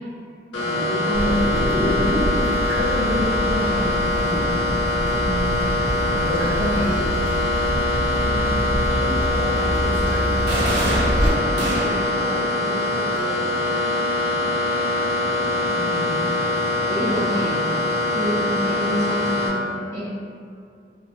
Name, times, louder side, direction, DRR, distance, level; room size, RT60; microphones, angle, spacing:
sound 1, 0.5-19.5, left 1 dB, 85° left, 0.6 m, -23 dB
voice 1, 0.6-2.4 2.7-4.7 5.1-5.6 5.9-7.1 15.7-16.1 16.9-17.6 18.1-20.0, equal, 20° right, -17 dB, 0.7 m, -27 dB
Water tap faucet / Drip, 1.1-11.3, equal, 50° right, 0.7 m, -26 dB
voice 2, 7.6-11.1 11.8-13.5, equal, 30° left, -8 dB, 0.7 m, -35 dB
sound 2, 10.5-12.2, right 1 dB, 80° right, 0.5 m, -26 dB
2.1 x 2.0 x 3.0 m, 2.3 s
head